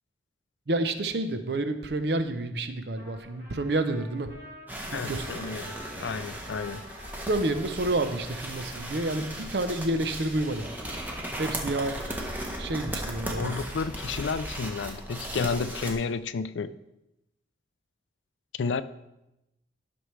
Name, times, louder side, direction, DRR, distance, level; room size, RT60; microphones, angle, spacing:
voice 1, 0.7-4.3 4.9-5.6 7.3-10.7 11.4-12.0 12.6-13.5, right 2 dB, 60° right, 9 dB, 0.7 m, -29 dB
Trumpet, 3.0-10.1, equal, 80° right, 3.3 m, -50 dB
sound 1, 4.7-15.9, right 1 dB, 10° right, 0.9 m, -37 dB
voice 2, 4.9-6.9 13.4-16.8 18.6-18.8, left 5 dB, 75° left, 15 dB, 0.4 m, -31 dB
11.0 x 6.1 x 3.2 m, 0.92 s
head